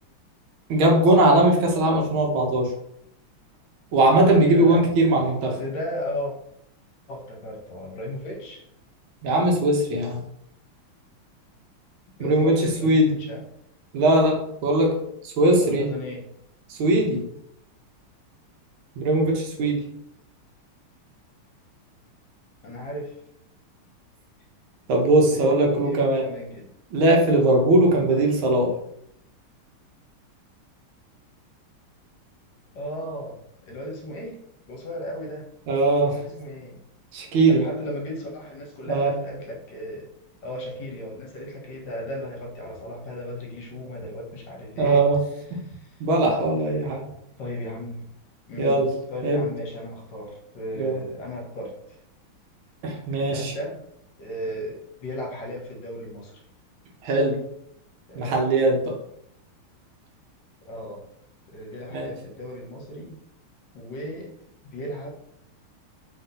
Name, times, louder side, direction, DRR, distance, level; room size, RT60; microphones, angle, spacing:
voice 1, 0.7-2.7 3.9-5.5 9.2-10.2 12.2-13.2 13.9-15.0 15.2-15.9 16.7-17.2 19.0-19.8 24.9-26.2 26.9-28.7 35.7-36.2 37.1-37.6 38.9-39.1 44.8-45.2 46.0-47.0 48.6-48.9 49.2-49.4 50.8-51.0 52.8-53.5 57.0-57.4 58.1-59.0 61.9-62.1, right 1 dB, 75° right, 1 dB, 1.6 m, -20 dB
voice 2, 4.5-6.3 7.1-8.6 12.2-13.4 15.5-16.2 22.6-23.2 25.3-26.7 32.7-34.4 34.7-35.5 36.2-36.8 37.2-40.1 40.4-45.0 45.6-46.0 47.4-48.1 48.5-48.8 49.1-52.0 53.2-53.8 54.2-56.4 58.1-58.5 60.7-61.1 61.5-63.2 63.7-64.3 64.6-65.1, equal, 65° left, 0 dB, 1.3 m, -35 dB
3.7 x 2.7 x 3.8 m, 0.74 s
omnidirectional pair, 2.4 m